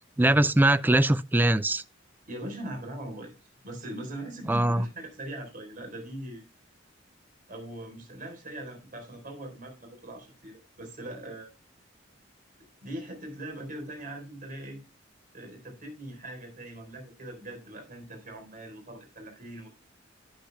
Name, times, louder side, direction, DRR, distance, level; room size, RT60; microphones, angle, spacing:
voice 1, 0.2-1.8 4.5-4.9, right 1 dB, 10° right, 0.4 m, -22 dB
voice 2, 2.3-3.3 3.6-6.5 7.5-11.5 12.8-14.8 15.3-19.7, right 1 dB, 45° right, 4.0 m, -41 dB
11.5 x 10.5 x 2.3 m
head